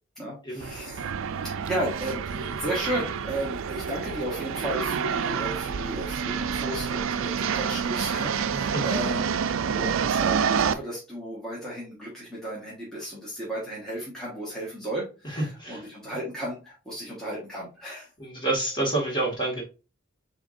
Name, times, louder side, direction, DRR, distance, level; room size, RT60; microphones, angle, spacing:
voice 1, 0.2-1.1 1.4-9.4 9.7-18.1, right 1 dB, 5° left, -6 dB, 1.3 m, -34 dB
sound 1, 0.6-10.7, right 7 dB, 70° right, 0.4 m, -28 dB
voice 2, 15.2-15.8 18.2-19.6, right 2 dB, 20° left, -2 dB, 1.8 m, -28 dB
6.8 x 2.9 x 2.5 m, 0.32 s
head